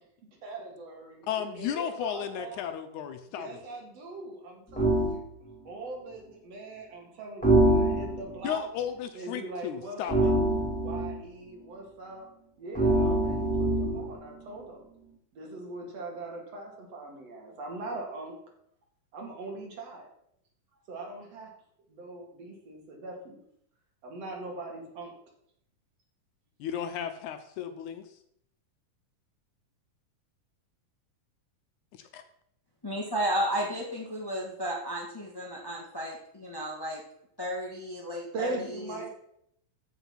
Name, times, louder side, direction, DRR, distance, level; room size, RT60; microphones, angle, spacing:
voice 1, 0.4-2.6 3.3-5.3 5.6-8.6 9.1-10.4 10.8-12.3 12.6-14.9 15.3-18.3 19.1-20.1 20.9-21.5 21.9-23.4 24.0-25.1 38.3-39.1, right 2 dB, 55° right, 1 dB, 3.1 m, -41 dB
voice 2, 1.3-3.6 8.4-10.3 26.6-28.1 31.9-32.2, left 9 dB, 75° left, 9 dB, 2.1 m, -34 dB
sound 1, 4.8-5.2 7.4-8.4 10.1-11.2 12.7-14.1, right 1 dB, 5° left, 1.6 m, -24 dB
voice 3, 32.8-37.0 37.4-39.0, equal, 35° left, -1 dB, 0.3 m, -33 dB
14.0 x 5.3 x 5.7 m, 0.72 s
omnidirectional pair, 3.7 m